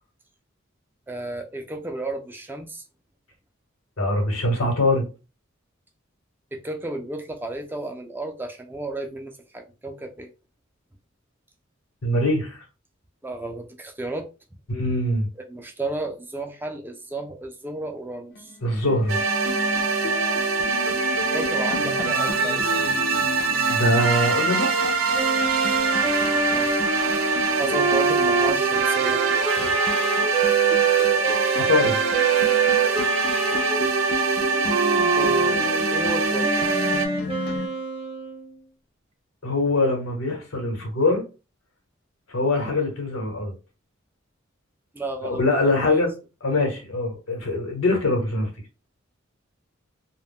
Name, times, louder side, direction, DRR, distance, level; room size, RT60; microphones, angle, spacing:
voice 1, 1.1-2.8 6.5-10.3 13.2-14.3 15.4-18.5 21.3-22.8 26.5-26.9 27.6-29.2 29.6-29.7 35.2-36.7 44.9-46.0, right 2 dB, 10° right, 0.3 m, -33 dB
voice 2, 4.0-5.1 12.0-12.6 14.7-15.3 18.6-19.2 23.7-24.8 31.6-32.0 39.4-41.2 42.3-43.5 45.2-46.1 46.4-48.5, left 2 dB, 85° left, 1.0 m, -23 dB
sound 1, 18.3-37.7, left 3 dB, 50° left, 0.5 m, -34 dB
sound 2, 19.1-37.1, right 4 dB, 75° right, 0.5 m, -24 dB
Wind instrument woodwind instrument, 25.1-38.5, right 5 dB, 30° right, 0.7 m, -25 dB
2.2 x 2.0 x 3.5 m
head